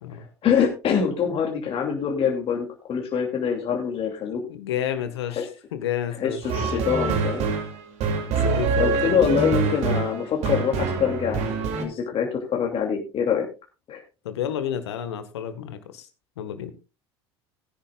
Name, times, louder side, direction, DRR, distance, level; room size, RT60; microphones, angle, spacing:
voice 1, 0.4-4.4 5.4-5.5 6.2-7.5 8.8-13.5 13.9-14.0, left 7 dB, 45° left, 1 dB, 2.8 m, -25 dB
voice 2, 4.5-7.1 8.3-9.4 14.2-16.1 16.4-16.7, left 10 dB, 75° left, 10 dB, 1.6 m, -31 dB
sound 1, 6.4-11.8, right 5 dB, 55° right, 2.7 m, -25 dB
18.0 x 10.0 x 2.4 m, 0.30 s
hypercardioid pair, 75°, 14 cm